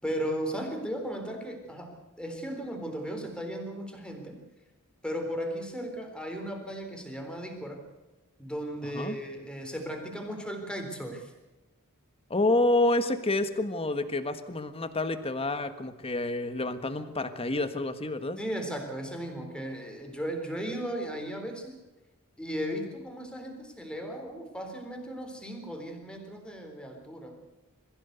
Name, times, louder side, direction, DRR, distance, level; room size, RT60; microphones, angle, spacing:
voice 1, 0.0-4.4 5.0-7.8 8.4-11.3 18.4-21.7 22.4-27.4, equal, 5° left, 3 dB, 3.8 m, -36 dB
voice 2, 8.8-9.2 12.3-18.4, left 2 dB, 25° left, 10 dB, 1.5 m, -28 dB
22.5 x 15.5 x 8.1 m, 1.1 s
head